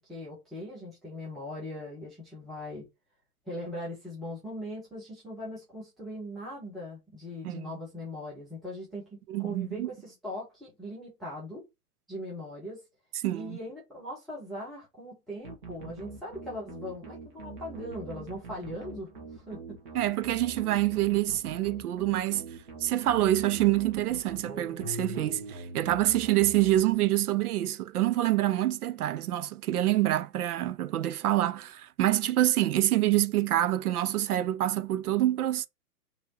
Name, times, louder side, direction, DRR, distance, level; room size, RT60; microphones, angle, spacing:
voice 1, 0.0-2.9 3.5-11.6 12.1-12.8 13.3-19.8, left 1 dB, ahead, 0.3 m, -40 dB
voice 2, 9.3-9.9 13.2-13.6 19.9-22.5 22.8-35.7, right 14 dB, 75° right, 0.6 m, -26 dB
sound 1, 15.4-27.3, right 3 dB, 30° right, 1.1 m, -43 dB
2.9 x 2.8 x 3.7 m
hypercardioid pair, 175°, 46 cm